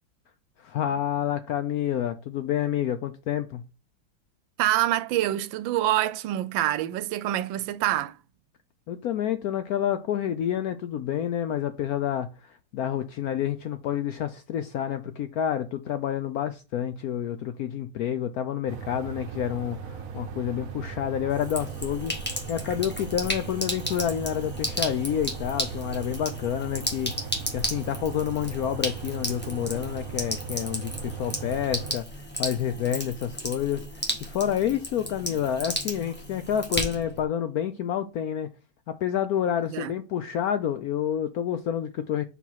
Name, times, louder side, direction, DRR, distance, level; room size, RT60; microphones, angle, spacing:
voice 1, 0.6-3.6 8.9-22.2 22.5-38.5 38.9-42.2, left 9 dB, 75° left, 0.8 m, -29 dB
voice 2, 4.6-8.2 39.7-39.9, right 14 dB, 85° right, 1.3 m, -26 dB
sound 1, 18.7-31.9, right 7 dB, 60° right, 1.0 m, -38 dB
Sink (filling or washing), 21.3-37.2, equal, 5° left, 1.3 m, -34 dB
4.6 x 4.0 x 5.5 m
omnidirectional pair, 2.1 m